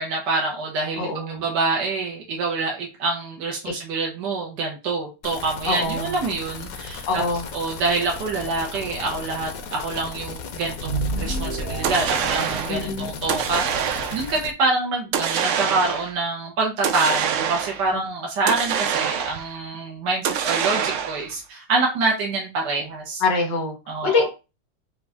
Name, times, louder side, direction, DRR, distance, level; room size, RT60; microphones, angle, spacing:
voice 1, 0.0-7.2 7.5-23.2 23.9-24.3, right 3 dB, 75° right, -1 dB, 1.7 m, -26 dB
voice 2, 1.0-1.4 3.6-3.7 5.6-6.2 7.1-7.5 12.7-13.2 23.2-23.8 24.0-24.3, left 3 dB, 85° left, 1 dB, 2.2 m, -24 dB
sound 1, 5.2-14.5, left 5 dB, 65° left, 1.0 m, -36 dB
sound 2, 10.8-13.3, right 2 dB, 40° right, 1.1 m, -30 dB
sound 3, 11.8-12.8 13.3-14.3 15.1-16.2 16.8-17.9 18.5-19.6 20.2-21.3, right 8 dB, 90° right, 0.6 m, -25 dB
5.0 x 2.5 x 3.4 m, 0.28 s
omnidirectional pair, 1.9 m